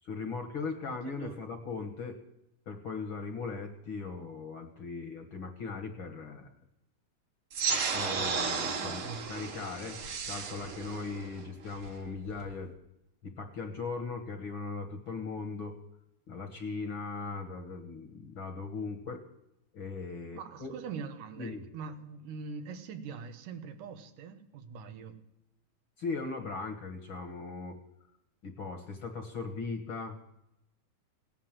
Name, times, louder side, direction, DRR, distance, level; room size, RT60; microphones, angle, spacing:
voice 1, 0.0-2.2 2.7-6.5 7.9-10.0 10.3-12.7 13.2-15.8 16.3-19.2 19.7-20.7 21.4-21.6 26.0-27.8 28.4-30.2, left 4 dB, 55° left, 6 dB, 1.6 m, -39 dB
voice 2, 0.9-1.4 8.8-9.2 20.3-25.2, right 5 dB, 85° right, 8 dB, 2.8 m, -43 dB
sound 1, 7.5-12.5, right 5 dB, 50° right, 2.0 m, -34 dB
17.5 x 10.5 x 7.5 m, 0.85 s
omnidirectional pair, 3.6 m